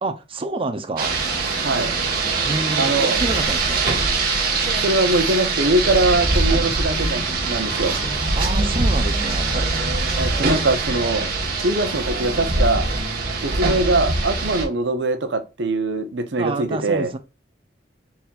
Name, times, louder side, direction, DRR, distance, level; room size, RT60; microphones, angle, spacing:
voice 1, 0.0-1.2 2.4-3.9 8.3-9.5 16.4-17.2, right 2 dB, 30° right, 0.6 m, -28 dB
Rain, 1.0-14.6, right 3 dB, 55° right, 1.3 m, -22 dB
voice 2, 2.8-3.2 4.8-7.9 10.2-11.3 11.6-12.9 13.4-17.1, right 2 dB, 75° right, 0.8 m, -22 dB
4.2 x 4.1 x 2.3 m
head